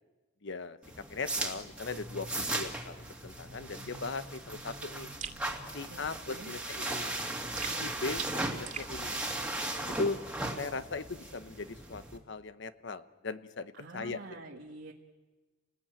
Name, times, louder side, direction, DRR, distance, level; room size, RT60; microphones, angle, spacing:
voice 1, 0.4-0.8 1.1-5.1 5.7-7.2 7.8-9.2 10.0-10.2 10.6-14.5, left 3 dB, 65° left, 13 dB, 1.0 m, -39 dB
sound 1, 0.8-12.2, right 2 dB, 5° right, 2.3 m, -37 dB
sound 2, 5.2-5.4 7.6-8.9, right 7 dB, 40° right, 2.4 m, -41 dB
voice 2, 5.9-6.5 13.8-14.9, right 2 dB, 65° right, 0 dB, 1.6 m, -47 dB
29.0 x 19.5 x 9.0 m, 1.3 s
head